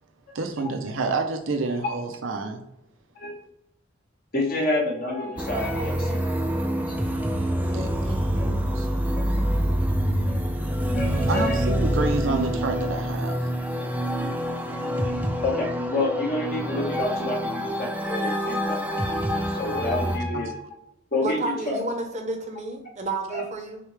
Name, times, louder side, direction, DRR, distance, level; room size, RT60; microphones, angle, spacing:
voice 1, 0.3-2.6 7.7-9.7 11.3-13.4 20.3-20.4, right 3 dB, 70° right, 5 dB, 0.5 m, -29 dB
voice 2, 4.3-8.5 10.2-10.4 10.9-11.7 15.4-20.6 21.1-21.4 21.6-21.8 23.3-23.4, left 2 dB, 45° left, -3 dB, 0.9 m, -29 dB
sound 1, 5.4-20.2, equal, 10° right, 0.3 m, -26 dB
voice 3, 21.2-23.8, right 2 dB, 35° right, 4 dB, 0.7 m, -31 dB
6.4 x 2.2 x 3.2 m, 0.81 s
head